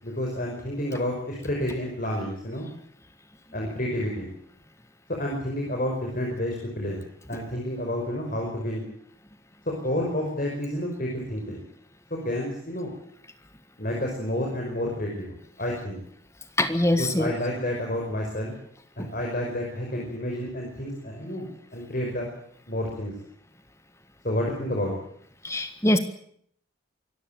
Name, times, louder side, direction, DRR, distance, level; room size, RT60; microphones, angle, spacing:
voice 1, 0.0-2.7 3.5-4.3 5.1-7.0 7.3-8.9 9.7-11.6 12.1-12.9 13.8-16.0 17.0-18.5 19.0-22.3 22.7-23.1 24.2-24.9, left 1 dB, 45° left, -1 dB, 5.5 m, -30 dB
voice 2, 16.6-17.3 25.4-26.0, left 1 dB, 15° left, 9 dB, 1.6 m, -23 dB
25.0 x 14.5 x 9.2 m, 0.64 s
head